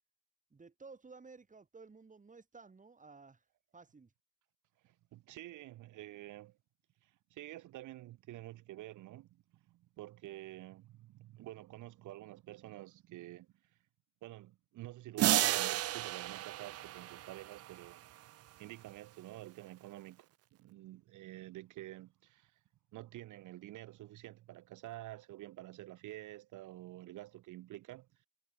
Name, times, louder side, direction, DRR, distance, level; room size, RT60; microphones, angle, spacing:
voice 1, 0.5-3.4 3.7-4.1, right 4 dB, 25° right, 2.3 m, -55 dB
voice 2, 4.8-6.6 7.0-13.5 14.2-18.0 18.6-20.3 20.6-22.5 22.9-28.1, right 16 dB, 85° right, 1.2 m, -49 dB
sound 1, 15.2-17.9, right 14 dB, 55° right, 0.4 m, -33 dB
cardioid pair, 90°, 30 cm